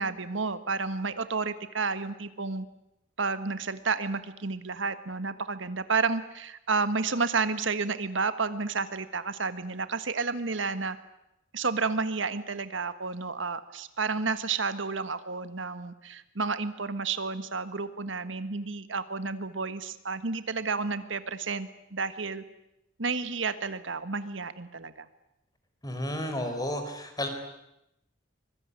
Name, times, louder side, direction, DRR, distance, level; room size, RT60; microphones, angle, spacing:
voice 1, 0.0-2.7 3.2-11.0 11.5-22.4 23.0-25.1, right 4 dB, 80° right, 12 dB, 1.5 m, -31 dB
voice 2, 25.8-27.3, left 1 dB, 20° left, 7 dB, 4.4 m, -32 dB
24.5 x 22.5 x 9.6 m, 0.85 s
head